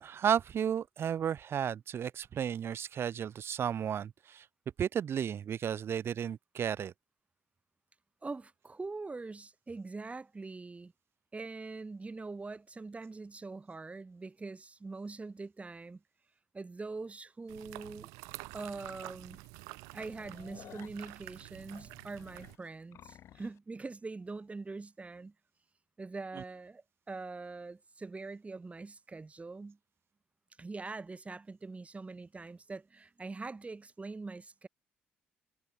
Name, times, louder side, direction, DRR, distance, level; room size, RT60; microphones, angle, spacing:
voice 1, 0.0-4.5 4.8-6.9 26.4-26.5, right 8 dB, 45° right, 0.6 m, -33 dB
voice 2, 8.2-10.9 11.3-16.0 16.5-18.1 18.5-19.4 19.9-25.3 26.0-29.8 30.6-34.7, right 3 dB, 25° right, 1.7 m, -43 dB
sound 1, 17.5-22.6, right 29 dB, 70° right, 3.6 m, -48 dB
sound 2, 18.3-18.4 18.9-19.0 19.3-19.5 19.8-23.6, left 11 dB, 55° left, 1.7 m, -55 dB
figure-of-eight pair, 50°, 6 cm